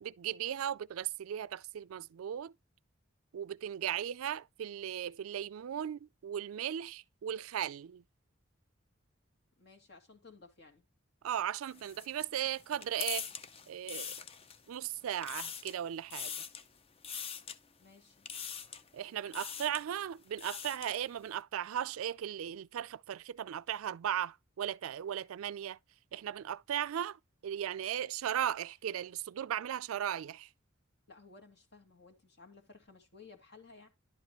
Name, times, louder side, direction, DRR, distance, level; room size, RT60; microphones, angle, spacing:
voice 1, 0.0-2.5 3.3-8.0 11.2-13.3 13.7-14.1 14.7-16.3 18.9-25.8 26.1-30.5, right 10 dB, 85° right, 0.4 m, -37 dB
voice 2, 9.6-10.8 17.8-18.2 31.1-33.9, left 4 dB, 50° left, 2.2 m, -57 dB
sound 1, 11.7-14.8 15.1-15.8 16.1-16.7 17.0-17.6 18.3-18.9 19.3-19.9 20.2-21.0, left 7 dB, 30° left, 0.5 m, -42 dB
11.0 x 5.1 x 3.0 m
head